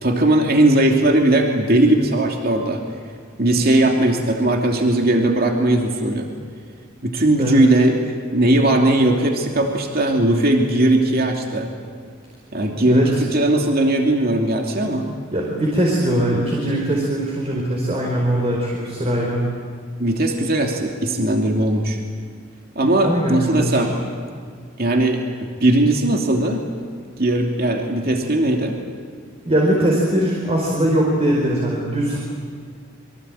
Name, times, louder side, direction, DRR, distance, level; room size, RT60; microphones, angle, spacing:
voice 1, 0.0-2.8 3.4-6.3 7.0-11.7 12.5-15.1 20.0-22.0 22.7-23.9 24.8-26.6 27.2-28.8, right 1 dB, 50° right, 2 dB, 2.8 m, -18 dB
voice 2, 12.8-13.2 15.3-19.5 23.0-24.0 29.4-32.2, right 1 dB, 30° right, -2 dB, 4.7 m, -21 dB
27.0 x 24.0 x 8.9 m, 2.1 s
head